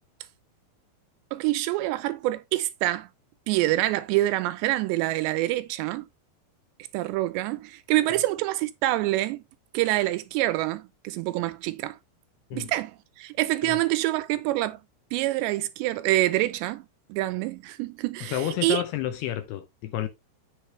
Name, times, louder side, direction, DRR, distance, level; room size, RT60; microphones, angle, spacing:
voice 1, 1.3-3.1 3.5-6.1 6.9-9.4 9.7-12.0 12.5-14.8 15.1-16.8 17.1-18.8, right 16 dB, 80° right, 2.6 m, -26 dB
voice 2, 18.2-20.1, left 12 dB, 80° left, 2.4 m, -30 dB
8.3 x 6.5 x 3.2 m
omnidirectional pair, 5.3 m